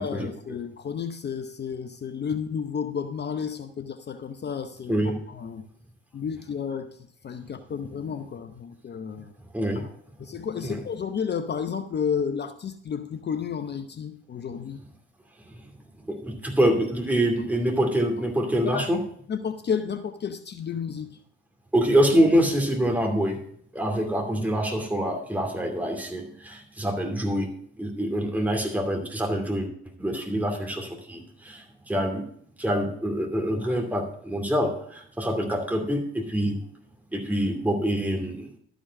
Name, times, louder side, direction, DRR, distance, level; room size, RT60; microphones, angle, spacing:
voice 1, 0.0-4.9 5.3-5.6 6.1-6.9 7.2-9.3 9.8-9.9 10.2-14.8 18.7-18.8 19.3-21.2 30.4-30.5, left 7 dB, 30° left, 9 dB, 0.8 m, -32 dB
voice 2, 16.1-19.0 21.7-23.4 23.7-27.5 27.8-29.7 30.0-32.2 32.6-36.6 37.1-38.5, equal, 5° right, 1 dB, 2.6 m, -25 dB
12.5 x 5.1 x 6.3 m, 0.65 s
hypercardioid pair, 70°, 35 cm